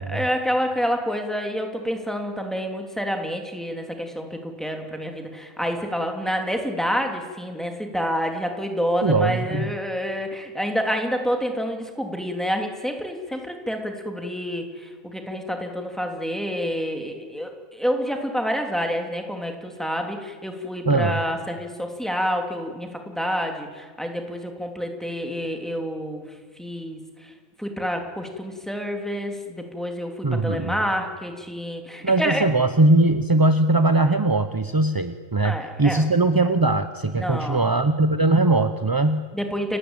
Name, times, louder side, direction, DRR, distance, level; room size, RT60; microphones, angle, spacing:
voice 1, 0.1-26.2 26.6-27.3 27.6-32.4 35.4-36.0 37.2-37.7 39.3-39.8, equal, ahead, 3 dB, 2.9 m, -28 dB
voice 2, 9.0-9.7 20.9-21.2 30.2-30.8 32.0-39.3, right 2 dB, 25° right, 10 dB, 0.5 m, -20 dB
29.5 x 16.5 x 8.9 m, 1.5 s
omnidirectional pair, 1.4 m